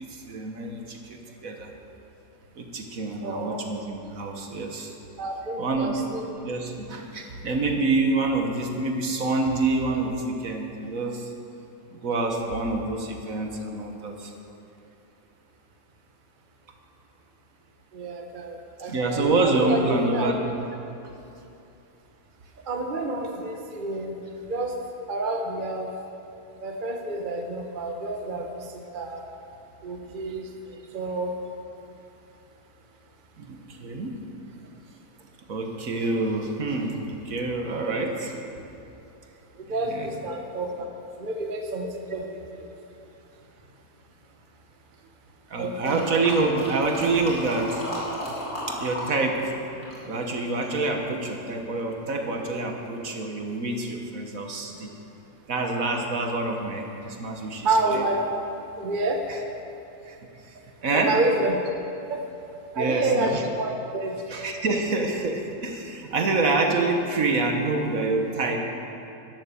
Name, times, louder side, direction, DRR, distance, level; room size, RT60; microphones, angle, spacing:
voice 1, 0.0-1.7 2.5-4.9 5.6-6.0 6.4-11.3 11.9-14.3 18.8-20.4 33.4-34.2 35.5-38.3 39.9-40.1 45.5-47.8 48.7-49.5 50.0-54.9 55.5-58.1 59.3-59.4 60.0-60.2 60.5-60.6 60.8-61.2 62.7-63.4 64.3-68.6, right 3 dB, 60° right, 3 dB, 1.6 m, -27 dB
voice 2, 3.2-3.6 5.2-6.3 17.9-20.5 22.7-24.8 25.1-25.9 26.6-29.3 29.8-31.3 37.8-38.1 39.5-40.9 41.2-42.7 45.5-46.2 57.6-59.3 60.9-61.7 62.1-62.2 62.7-63.3 63.6-64.2, right 2 dB, 35° right, 2 dB, 1.1 m, -29 dB
sound 1, 45.8-49.1 49.3-50.8 51.3-51.4, equal, 60° left, 3.7 m, -34 dB
12.0 x 11.5 x 6.9 m, 2.8 s
omnidirectional pair, 1.7 m